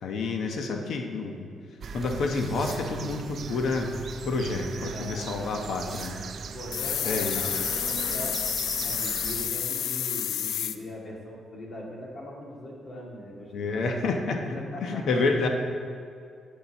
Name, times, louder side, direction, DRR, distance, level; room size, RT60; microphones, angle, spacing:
voice 1, 0.0-1.5 1.9-3.9 4.3-6.2 7.1-7.4 13.5-15.5, left 3 dB, 70° left, 3 dB, 0.9 m, -29 dB
sound 1, 1.8-9.5, right 6 dB, 55° right, 0.4 m, -38 dB
sound 2, 2.0-2.8 5.2-6.1, right 2 dB, 10° right, 1.7 m, -47 dB
voice 2, 4.9-5.7 6.5-14.2 14.5-15.1, equal, 50° left, -2 dB, 2.0 m, -40 dB
sound 3, 6.7-10.8, left 10 dB, 85° left, 0.4 m, -29 dB
6.8 x 5.9 x 7.1 m, 2.3 s
cardioid pair, 115°, 0 cm